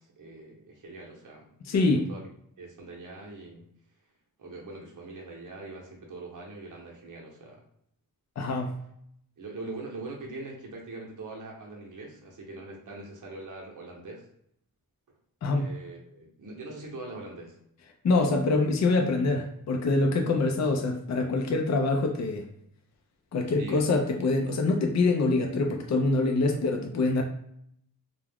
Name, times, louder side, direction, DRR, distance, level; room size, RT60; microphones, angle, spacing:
voice 1, 0.0-2.3 2.6-3.7 4.4-7.6 9.4-14.3 15.5-17.6 23.6-23.9, right 2 dB, 60° right, -1 dB, 0.7 m, -42 dB
voice 2, 1.7-2.1 8.4-8.7 15.4-15.7 18.0-22.4 23.3-27.2, left 3 dB, 50° left, 3 dB, 0.4 m, -25 dB
2.3 x 2.1 x 3.3 m, 0.70 s
wide cardioid pair, 70°, 36 cm